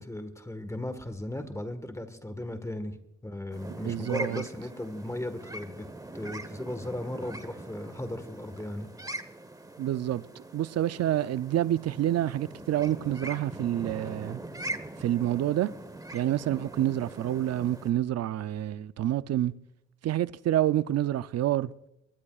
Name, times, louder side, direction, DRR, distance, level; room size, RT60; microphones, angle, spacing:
voice 1, 0.0-2.9 3.2-5.9 6.1-8.9, left 1 dB, 10° left, 1.5 m, -36 dB
sound 1, 3.5-17.9, right 1 dB, 10° right, 1.1 m, -42 dB
voice 2, 3.8-4.4 9.8-14.4 15.0-15.7 16.1-19.5 20.0-21.7, right 12 dB, 55° right, 0.5 m, -28 dB
23.0 x 20.5 x 2.4 m
cardioid pair, 90°, 30 cm